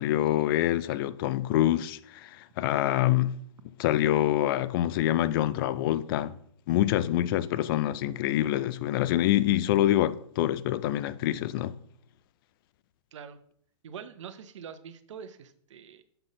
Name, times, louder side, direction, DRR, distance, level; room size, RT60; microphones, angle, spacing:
voice 1, 0.0-3.4 3.8-6.4 6.7-11.8, left 13 dB, 40° left, 0.5 m, -26 dB
voice 2, 13.8-16.0, right 7 dB, 65° right, 0.8 m, -44 dB
6.9 x 3.9 x 6.1 m
hypercardioid pair, 120°, 17 cm